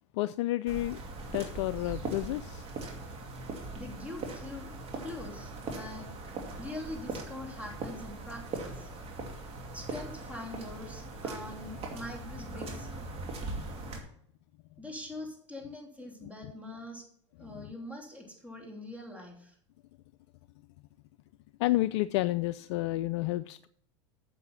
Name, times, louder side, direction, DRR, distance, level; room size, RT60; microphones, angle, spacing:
voice 1, 0.1-1.0 1.3-2.7 17.4-17.7 21.6-23.7, left 17 dB, 60° left, 14 dB, 0.4 m, -30 dB
sound 1, 0.7-14.0, right 2 dB, 40° right, 2.4 m, -40 dB
voice 2, 3.7-6.1 6.6-8.9 9.7-12.9 14.8-17.1 17.4-19.6, left 1 dB, 10° right, 0 dB, 3.1 m, -43 dB
8.7 x 6.9 x 5.6 m, 0.65 s
hypercardioid pair, 90°, 16 cm